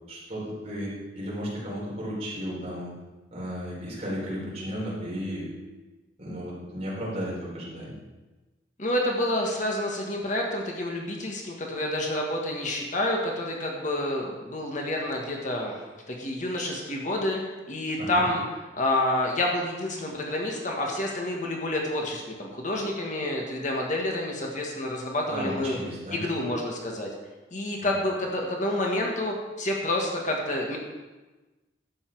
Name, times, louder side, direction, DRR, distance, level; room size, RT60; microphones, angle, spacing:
voice 1, 0.1-2.9 3.3-5.5 6.2-7.9 18.0-18.2 25.3-26.2 27.8-27.9, equal, 35° right, -6 dB, 4.4 m, -34 dB
voice 2, 8.8-15.8 16.1-17.4 17.7-18.4 18.8-25.8 26.1-27.1 27.5-30.8, left 1 dB, 45° left, 0 dB, 1.6 m, -28 dB
11.5 x 8.5 x 4.7 m, 1.2 s
head